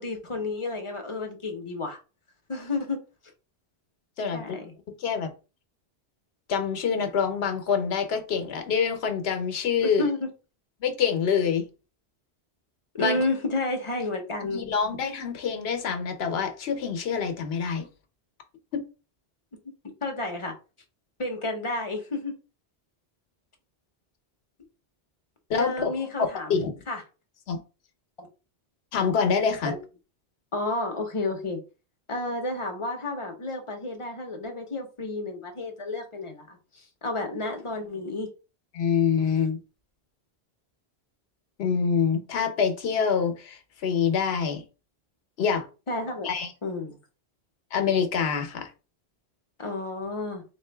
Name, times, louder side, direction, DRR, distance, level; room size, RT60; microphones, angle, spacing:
voice 1, 0.0-2.0 2.5-3.0 4.3-4.7 9.8-10.3 13.0-14.6 20.0-20.5 21.2-22.3 25.6-27.0 28.2-28.3 29.6-29.8 30.5-31.6 32.1-38.3 45.9-46.3 46.6-47.0 49.6-50.4, left 2 dB, 35° left, 0.8 m, -31 dB
voice 2, 4.2-4.6 5.0-5.3 6.5-10.0 10.8-11.7 13.0-13.2 14.4-17.9 18.7-18.8 25.5-26.1 26.5-26.8 27.5-27.6 28.9-29.7 38.7-39.6 41.6-44.6 45.4-45.6 46.2-46.5 47.7-48.7, left 6 dB, 75° left, 1.0 m, -26 dB
3.7 x 2.6 x 3.3 m
omnidirectional pair, 1.1 m